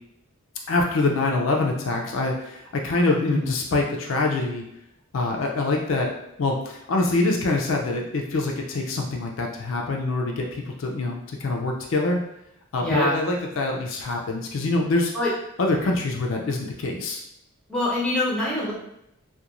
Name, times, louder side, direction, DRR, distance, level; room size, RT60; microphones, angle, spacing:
voice 1, 0.7-4.6 5.1-6.1 6.4-12.2 12.7-15.1 15.6-17.2, left 2 dB, 60° left, 0 dB, 0.4 m, -25 dB
voice 2, 3.1-3.5 12.8-13.2 15.1-15.3 17.7-18.7, left 1 dB, 5° left, -6 dB, 0.6 m, -25 dB
2.9 x 2.2 x 2.4 m, 0.80 s
head